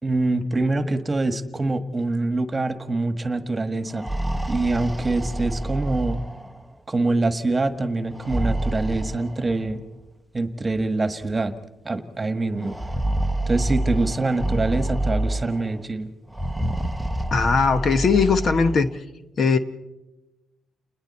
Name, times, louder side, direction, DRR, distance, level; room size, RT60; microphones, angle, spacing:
voice 1, 0.0-4.1 4.5-6.2 6.9-9.8 10.3-11.5 11.8-12.7 13.5-16.1, right 2 dB, 20° right, 9 dB, 1.5 m, -24 dB
sound 1, 3.8-6.7 8.1-9.8 10.8-10.9 11.2-11.3 12.6-15.7 16.3-18.9, right 1 dB, ahead, 0.9 m, -27 dB
voice 2, 17.3-18.9 19.4-19.6, left 5 dB, 50° left, 10 dB, 1.0 m, -19 dB
29.5 x 20.5 x 4.3 m, 1.0 s
cardioid pair, 90°, 0 cm